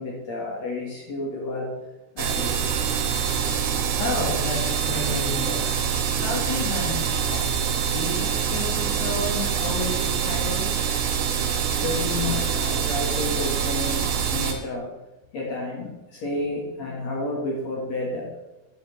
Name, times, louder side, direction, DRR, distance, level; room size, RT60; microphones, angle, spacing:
voice 1, 0.0-1.7 2.1-2.7 11.8-14.9 15.3-18.3, left 2 dB, 65° left, -2 dB, 1.6 m, -31 dB
sound 1, 2.2-14.5, right 7 dB, 80° right, 3.9 m, -25 dB
voice 2, 3.7-5.7 6.2-7.4 7.7-10.8, left 2 dB, 90° left, -1 dB, 5.0 m, -31 dB
11.5 x 5.3 x 6.4 m, 1.0 s
omnidirectional pair, 5.8 m